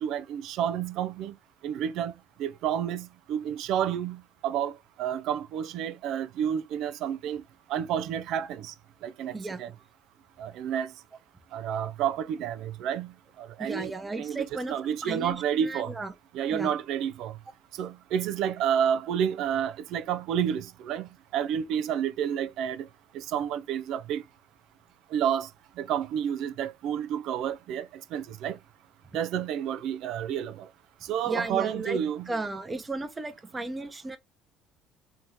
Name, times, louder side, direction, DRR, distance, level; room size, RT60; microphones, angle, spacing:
voice 1, 0.0-1.3 1.6-2.1 2.4-7.4 7.7-8.7 9.0-9.7 10.4-10.9 11.5-13.1 13.4-13.9 14.2-15.9 16.3-17.3 17.8-22.9 23.1-24.2 25.1-25.5 25.8-28.6 29.1-30.7 31.1-32.3, right 9 dB, 70° right, 0.5 m, -30 dB
voice 2, 9.3-9.6 13.6-14.8 15.0-16.1 16.5-16.7 31.2-32.0 32.3-34.2, right 3 dB, 20° right, 1.0 m, -34 dB
3.5 x 2.7 x 4.5 m
cardioid pair, 105°, 0 cm